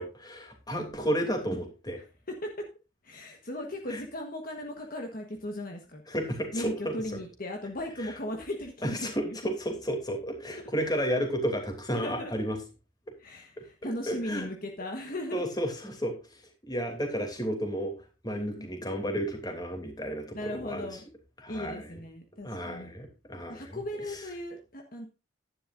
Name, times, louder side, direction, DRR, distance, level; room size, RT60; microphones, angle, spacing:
voice 1, 0.0-2.0 3.9-4.0 6.1-7.2 8.0-8.1 8.8-12.6 14.1-14.5 15.3-17.9 18.2-20.9 21.4-22.0 22.4-23.8 24.1-24.2, equal, 20° left, 4 dB, 2.8 m, -32 dB
voice 2, 2.0-2.5 3.0-6.0 6.5-9.4 11.9-12.3 13.2-15.5 18.3-18.7 20.3-21.0 21.5-22.9 23.5-25.1, left 1 dB, 45° left, 3 dB, 1.3 m, -37 dB
11.0 x 10.5 x 2.6 m, 0.31 s
head